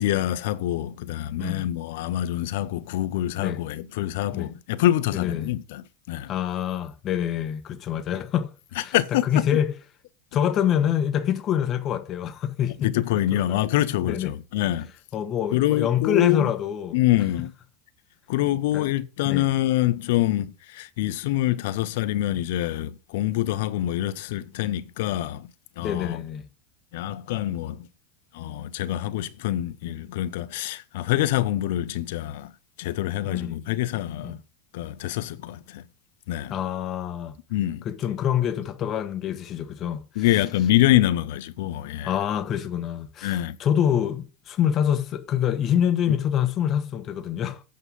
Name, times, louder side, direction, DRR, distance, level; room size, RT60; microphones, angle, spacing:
voice 1, 0.0-6.3 8.9-9.2 12.8-14.9 15.5-16.5 16.9-17.5 18.3-25.5 25.8-26.2 26.9-27.9 28.3-32.5 32.8-34.4 34.7-35.8 36.3-36.5 37.5-37.8 40.2-42.1 43.2-43.6, left 14 dB, 70° left, 0.7 m, -25 dB
voice 2, 5.1-5.5 6.3-8.5 8.8-9.7 10.3-13.6 14.0-14.3 15.1-17.0 18.7-18.9 19.2-19.5 25.8-26.5 33.2-33.7 34.2-34.4 36.5-37.3 37.8-40.4 42.0-47.6, left 9 dB, 40° left, 1.2 m, -26 dB
8.6 x 5.4 x 5.3 m
hypercardioid pair, 95°, 0 cm